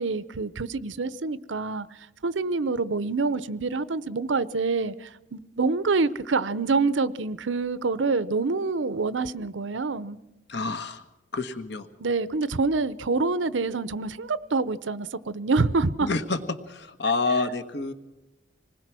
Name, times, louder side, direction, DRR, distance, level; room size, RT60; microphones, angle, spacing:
voice 1, 0.0-1.9 2.2-10.2 12.0-16.1, right 3 dB, 90° right, 0.8 m, -26 dB
voice 2, 10.5-11.0 11.3-11.9 16.0-16.4 16.7-17.9, left 3 dB, 65° left, 1.4 m, -28 dB
26.5 x 20.0 x 6.2 m
head